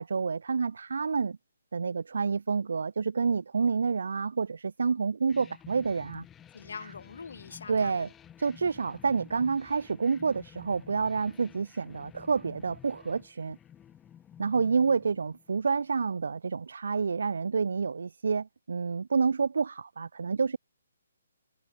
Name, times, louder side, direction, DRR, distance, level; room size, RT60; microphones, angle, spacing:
voice 1, 0.0-1.4 1.7-6.2 6.8-6.9 7.7-8.1 8.4-13.6 14.4-20.6, right 5 dB, 65° right, 0.4 m, -28 dB
sound 1, 5.3-15.8, left 9 dB, 5° left, 0.5 m, -53 dB
voice 2, 6.5-8.1, left 5 dB, 60° left, 1.4 m, -43 dB
hypercardioid pair, 180°, 0 cm